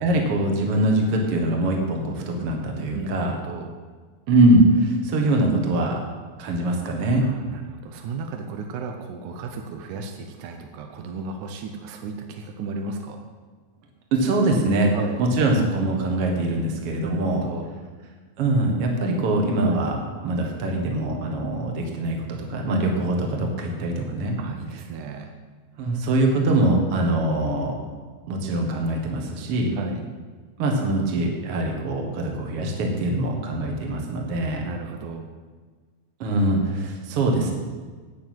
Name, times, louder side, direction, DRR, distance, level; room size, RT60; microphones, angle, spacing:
voice 1, 0.0-3.3 4.3-5.9 6.4-7.3 14.1-14.9 15.2-17.4 18.4-20.0 20.2-24.3 25.8-27.7 28.3-29.7 30.6-34.7 36.2-37.5, right 1 dB, 50° right, 1 dB, 2.0 m, -23 dB
voice 2, 2.9-3.8 5.7-6.0 7.2-13.2 14.9-15.2 17.0-17.7 19.6-19.8 24.4-25.3 29.7-30.1 34.6-35.3, right 4 dB, 75° right, 4 dB, 1.9 m, -35 dB
9.6 x 7.1 x 9.2 m, 1.5 s
omnidirectional pair, 4.4 m